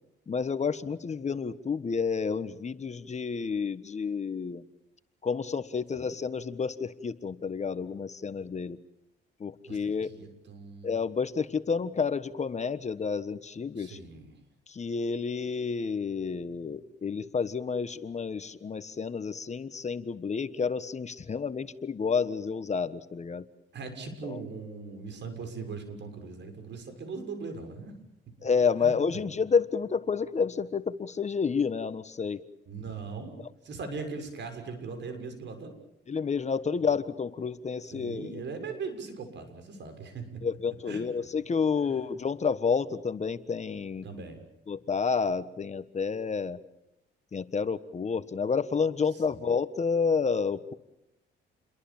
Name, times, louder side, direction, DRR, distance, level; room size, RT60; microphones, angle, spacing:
voice 1, 0.3-4.6 5.2-8.8 9.4-10.1 10.8-14.0 14.7-23.4 24.2-24.4 28.4-32.4 36.1-38.4 40.4-44.0 44.7-46.6 47.3-50.7, left 5 dB, 35° left, 13 dB, 1.3 m, -30 dB
voice 2, 9.7-10.9 13.7-14.4 23.7-27.9 28.8-29.0 32.7-33.3 33.6-35.7 36.8-36.9 37.9-40.3 40.9-41.0 41.8-42.0 44.0-44.4 49.1-49.4, right 4 dB, 65° right, 7 dB, 6.9 m, -40 dB
29.5 x 22.5 x 7.3 m, 0.83 s
cardioid pair, 90°, 20 cm